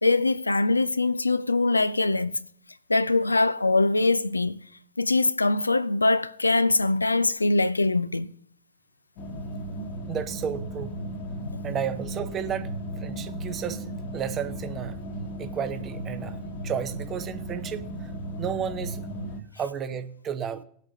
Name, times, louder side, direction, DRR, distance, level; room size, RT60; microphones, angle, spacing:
voice 1, 0.0-2.4 2.9-4.6 5.0-8.3 11.4-11.6, left 2 dB, 80° left, 0.4 m, -23 dB
sound 1, 9.2-19.4, right 1 dB, 45° left, 1.2 m, -35 dB
voice 2, 10.1-10.9 11.6-12.7 13.0-13.8 14.1-15.0 15.4-16.4 16.6-17.8 18.4-19.0 19.6-20.6, right 8 dB, 30° right, 0.8 m, -32 dB
20.0 x 8.1 x 2.8 m
figure-of-eight pair, 90°, 0 cm